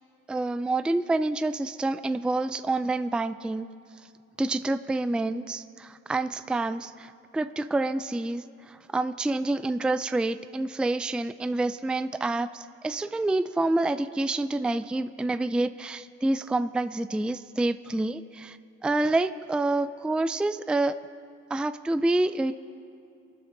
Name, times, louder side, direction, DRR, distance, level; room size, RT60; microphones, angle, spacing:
voice 1, 0.3-3.7 4.4-18.6 18.8-20.9 21.5-22.5, right 2 dB, 5° right, 12 dB, 0.4 m, -27 dB
23.5 x 12.5 x 3.9 m, 2.6 s
cardioid pair, 90°, 30 cm